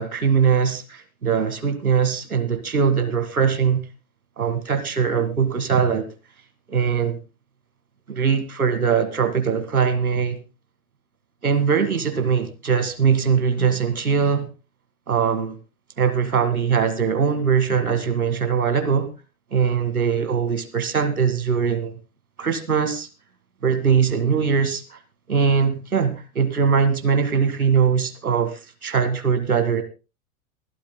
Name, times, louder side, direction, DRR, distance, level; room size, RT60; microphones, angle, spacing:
voice 1, 0.0-3.9 4.4-6.1 6.7-7.2 8.1-10.4 11.4-14.5 15.1-15.6 16.0-19.1 19.5-22.0 22.4-23.1 23.6-25.0 25.3-29.8, right 6 dB, 80° right, 2.0 m, -21 dB
27.5 x 12.0 x 2.2 m
figure-of-eight pair, 90°, 43 cm